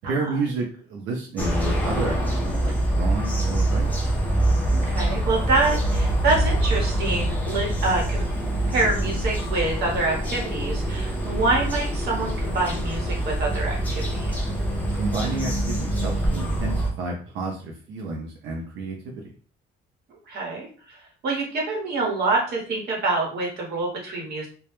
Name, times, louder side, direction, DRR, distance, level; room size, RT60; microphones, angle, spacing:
voice 1, 0.0-4.0 14.9-19.2, right 3 dB, 90° right, -1 dB, 0.5 m, -31 dB
sound 1, 1.4-16.9, right 1 dB, 10° left, 0.5 m, -25 dB
voice 2, 4.7-8.3 8.7-14.4 20.3-21.0 21.2-24.5, right 3 dB, 60° right, -2 dB, 1.0 m, -26 dB
2.2 x 2.1 x 2.9 m, 0.42 s
cardioid pair, 170°, 19 cm